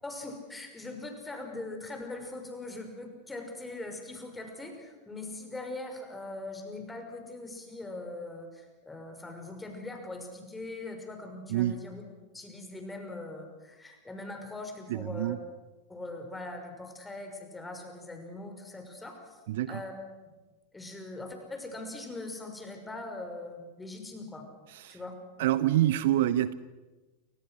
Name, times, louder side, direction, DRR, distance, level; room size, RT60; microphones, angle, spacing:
voice 1, 0.0-12.0 12.3-15.4 15.9-19.4 19.7-19.9 20.7-24.5 24.9-25.1, left 2 dB, 10° left, 4 dB, 5.8 m, -41 dB
voice 2, 14.9-15.4 19.5-19.8 24.7-25.0 25.4-26.5, right 13 dB, 55° right, 15 dB, 0.9 m, -26 dB
28.5 x 26.0 x 6.5 m, 1.2 s
figure-of-eight pair, 90°, 0 cm